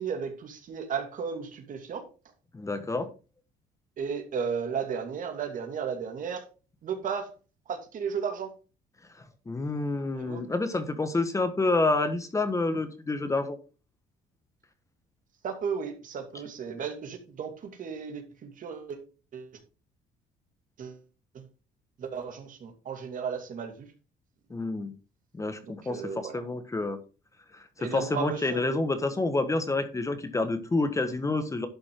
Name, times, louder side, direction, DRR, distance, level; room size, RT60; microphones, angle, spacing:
voice 1, 0.0-2.0 4.0-6.4 6.8-7.3 7.7-8.5 10.2-10.4 15.4-17.5 17.8-19.0 19.3-19.5 20.8-21.0 21.3-21.4 22.0-23.9 25.6-26.4 27.8-28.6, right 6 dB, 50° right, 6 dB, 2.4 m, -34 dB
voice 2, 2.5-3.1 9.5-13.6 24.5-24.9 25.3-27.0 27.8-31.7, left 2 dB, 20° left, 9 dB, 1.5 m, -28 dB
11.5 x 6.0 x 3.8 m, 0.33 s
cardioid pair, 110°, 17 cm